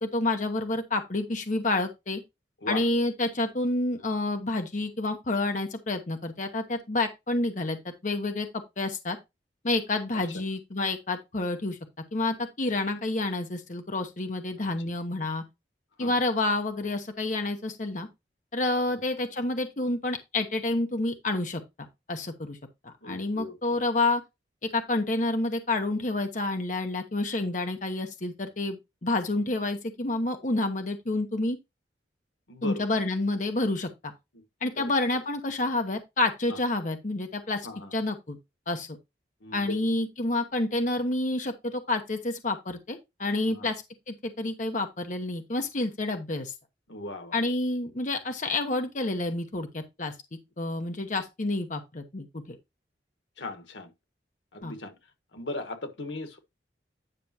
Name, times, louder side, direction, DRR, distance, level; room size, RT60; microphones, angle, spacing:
voice 1, 0.0-2.2 2.7-7.8 8.0-8.5 8.8-9.2 9.6-11.8 12.1-15.4 16.0-18.1 18.5-21.6 22.1-22.6 22.8-24.2 24.6-31.6 32.6-34.1 34.6-38.4 38.7-38.9 39.5-46.5 47.3-50.1 50.6-52.6 54.6-54.7, left 2 dB, 45° left, 1.0 m, -29 dB
voice 2, 14.6-14.9 16.0-16.2 18.9-19.0 23.0-23.8 32.5-32.9 34.8-34.9 36.5-36.6 37.6-37.9 39.4-39.7 43.4-43.7 46.9-47.5 53.4-53.9 54.5-54.9 55.3-56.4, left 2 dB, 90° left, 1.4 m, -38 dB
10.0 x 5.9 x 2.8 m
head